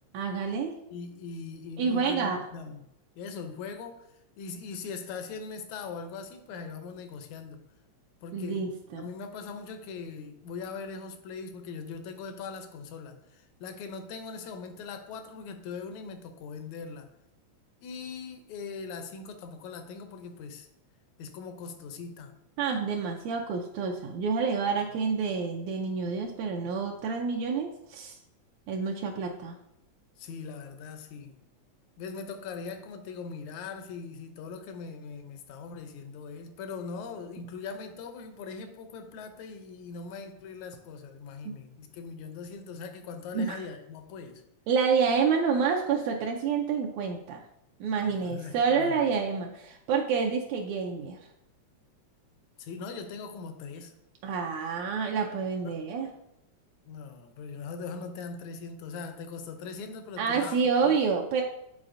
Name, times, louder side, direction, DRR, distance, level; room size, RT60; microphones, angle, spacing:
voice 1, 0.1-0.7 1.8-2.4 8.3-9.1 22.6-28.1 28.7-29.6 41.5-41.6 43.3-43.6 44.7-47.4 47.8-51.2 54.2-56.1 60.2-61.4, right 5 dB, 80° right, 1 dB, 1.9 m, -28 dB
voice 2, 0.9-2.8 3.2-7.6 8.2-8.7 9.0-17.1 17.8-20.7 21.2-22.4 30.2-31.4 32.0-44.4 48.0-49.0 52.6-54.0 55.6-55.8 56.9-60.6 60.8-61.0, left 5 dB, 80° left, 8 dB, 1.9 m, -41 dB
9.5 x 4.1 x 2.5 m, 0.82 s
omnidirectional pair, 3.3 m